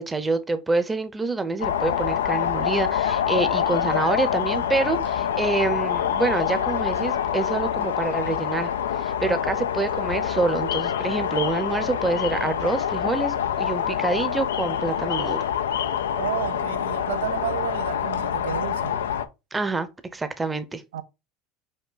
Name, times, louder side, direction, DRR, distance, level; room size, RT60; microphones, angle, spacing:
voice 1, 0.0-8.7 9.0-15.5 19.5-20.8, right 3 dB, 15° right, 0.7 m, -26 dB
sound 1, 1.6-19.3, left 9 dB, 90° left, 0.3 m, -26 dB
voice 2, 3.3-3.7 9.2-9.4 16.1-19.0 20.9-21.0, right 11 dB, 85° right, 0.3 m, -32 dB
5.2 x 2.2 x 3.9 m
hypercardioid pair, 90°, 0 cm